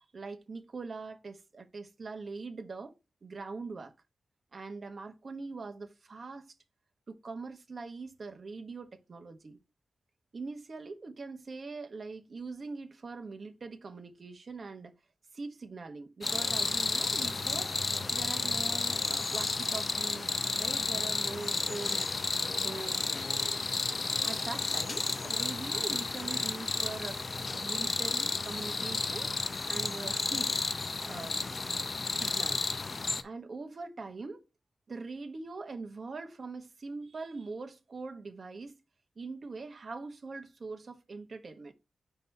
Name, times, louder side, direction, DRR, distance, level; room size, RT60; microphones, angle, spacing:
voice 1, 0.0-2.9 3.2-3.9 4.5-6.5 7.1-9.6 10.3-14.9 15.3-17.7 18.1-20.3 20.6-22.1 22.5-23.1 24.2-29.3 29.7-30.6 31.0-32.6 33.2-34.4 34.9-38.8 39.2-41.7, right 3 dB, 45° right, 1.1 m, -42 dB
sound 1, 16.2-33.2, left 3 dB, 40° left, 0.5 m, -32 dB
5.5 x 4.1 x 5.6 m
wide cardioid pair, 180°, 0 cm